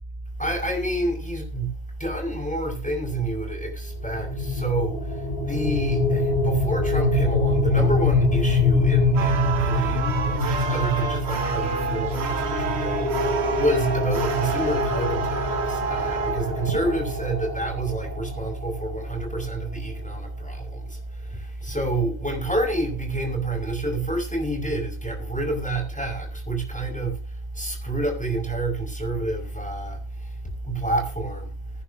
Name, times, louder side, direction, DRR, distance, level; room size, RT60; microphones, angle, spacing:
voice 1, 0.4-31.5, right 2 dB, 5° left, 5.5 m, -28 dB
sound 1, 4.0-18.9, left 2 dB, 60° left, 3.5 m, -25 dB
sound 2, 9.2-17.0, right 7 dB, 85° right, 1.2 m, -29 dB
22.0 x 10.0 x 2.8 m
omnidirectional pair, 1.1 m